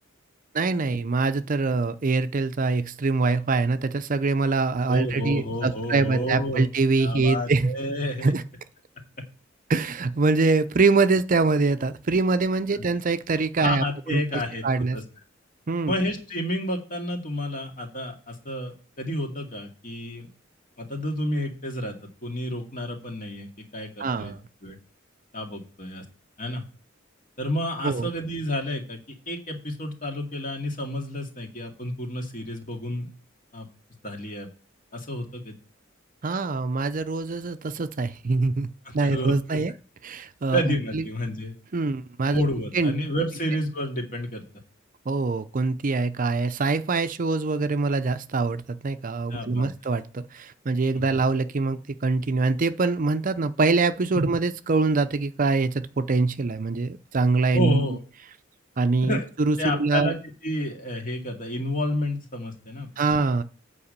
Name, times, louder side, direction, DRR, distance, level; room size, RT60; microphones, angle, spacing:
voice 1, 0.5-7.7 8.2-8.4 9.7-15.0 15.7-15.9 24.0-24.4 27.8-28.1 36.2-38.7 38.9-39.7 40.0-41.0 41.7-42.4 42.7-43.0 45.1-57.9 58.8-60.1 63.0-63.4, right 3 dB, 45° right, 0.5 m, -24 dB
voice 2, 4.9-6.6 7.0-8.3 12.7-12.8 13.6-15.0 15.9-20.3 20.8-22.0 22.2-24.3 24.6-24.8 25.3-26.0 26.4-26.6 27.4-33.1 33.5-33.7 34.0-34.5 34.9-35.5 38.9-39.6 40.5-41.6 42.3-44.4 49.3-49.7 50.9-51.0 54.1-54.3 57.5-58.0 59.0-59.3 59.6-62.9, left 1 dB, 45° left, 2.3 m, -30 dB
8.6 x 4.8 x 6.6 m
head